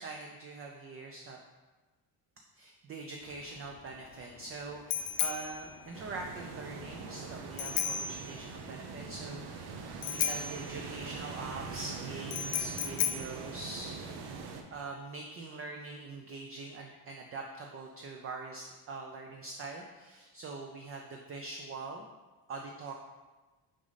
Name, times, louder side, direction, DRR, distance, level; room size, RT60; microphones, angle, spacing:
voice 1, 0.0-1.4 2.6-9.8 10.1-14.3 14.7-22.1 22.5-22.9, right 3 dB, 35° right, 2 dB, 0.4 m, -43 dB
Bicycle bell, 3.2-14.4, left 9 dB, 75° left, 0.6 m, -37 dB
sound 1, 5.9-14.6, right 5 dB, 65° right, 0.8 m, -43 dB
6.2 x 5.1 x 4.0 m, 1.2 s
cardioid pair, 165°, 43 cm